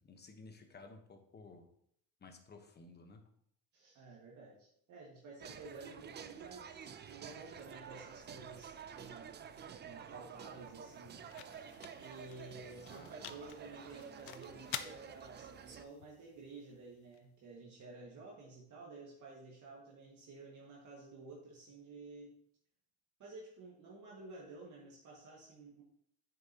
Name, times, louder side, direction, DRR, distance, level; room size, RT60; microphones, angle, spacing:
voice 1, 0.0-1.7 2.2-3.2 12.7-13.1, left 3 dB, 25° left, 6 dB, 1.1 m, -55 dB
voice 2, 3.7-11.7 12.0-22.3 23.2-25.8, right 3 dB, 50° right, -4 dB, 1.9 m, -52 dB
sound 1, 5.4-15.8, right 7 dB, 25° right, 0.4 m, -50 dB
sound 2, 9.9-17.8, left 12 dB, 80° left, 0.7 m, -51 dB
8.8 x 6.9 x 2.9 m, 0.68 s
cardioid pair, 125°, 39 cm